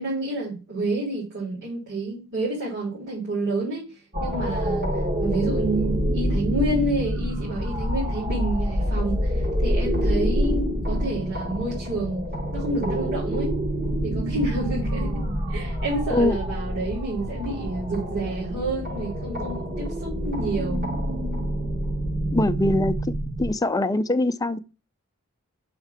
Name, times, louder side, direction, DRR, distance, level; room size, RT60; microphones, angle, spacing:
voice 1, 0.0-3.8 4.2-4.9 5.2-12.3 12.5-13.5 14.0-15.2 15.5-20.9, right 2 dB, 55° right, 3.5 m, -29 dB
sound 1, 4.1-23.5, equal, 40° right, 1.4 m, -27 dB
voice 2, 22.3-24.6, left 1 dB, 15° left, 0.4 m, -23 dB
5.9 x 5.6 x 5.8 m
head